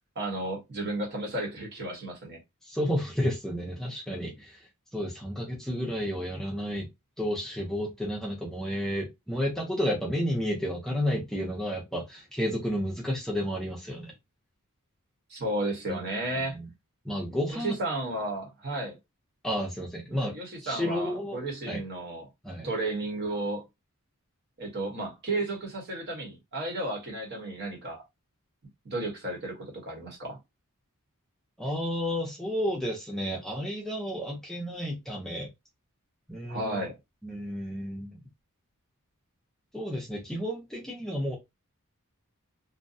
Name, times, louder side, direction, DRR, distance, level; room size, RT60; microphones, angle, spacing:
voice 1, 0.1-2.4 15.3-16.6 17.5-19.0 20.3-22.3 22.6-23.6 24.6-28.0 28.8-30.4 36.5-37.0, right 2 dB, 50° right, 1.1 m, -33 dB
voice 2, 2.6-4.6 4.9-6.9 7.2-14.1 15.9-16.0 16.5-16.7 17.0-17.8 19.4-21.8 22.4-22.7 31.6-35.5 36.3-36.9 37.2-38.2 39.7-41.4, equal, ahead, 0.5 m, -31 dB
2.6 x 2.1 x 2.6 m
head